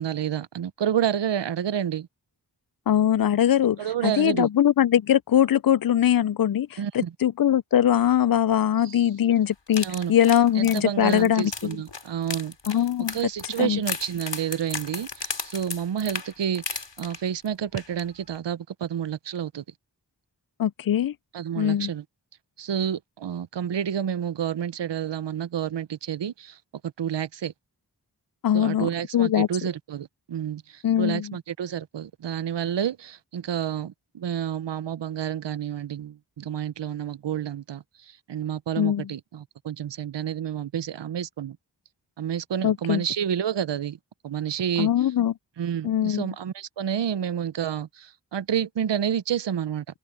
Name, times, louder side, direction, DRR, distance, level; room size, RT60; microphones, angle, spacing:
voice 1, 0.0-2.1 3.8-4.5 6.8-7.1 8.8-9.1 9.8-10.1 10.5-12.5 13.1-19.6 21.3-22.0 22.6-26.6 27.0-27.5 28.5-41.6 42.2-44.0 44.2-44.9 45.6-49.8, right 9 dB, 80° right, 0.7 m, -29 dB
voice 2, 2.9-11.8 12.7-13.2 13.6-13.8 20.6-21.1 21.6-21.9 28.4-29.5 30.8-31.4 38.8-39.1 42.6-43.0 44.8-45.3 45.8-46.3, left 10 dB, 55° left, 0.5 m, -22 dB
sound 1, 9.7-17.5 17.8-18.0 18.4-18.5, left 4 dB, 85° left, 5.6 m, -35 dB
wide cardioid pair, 40°, 42 cm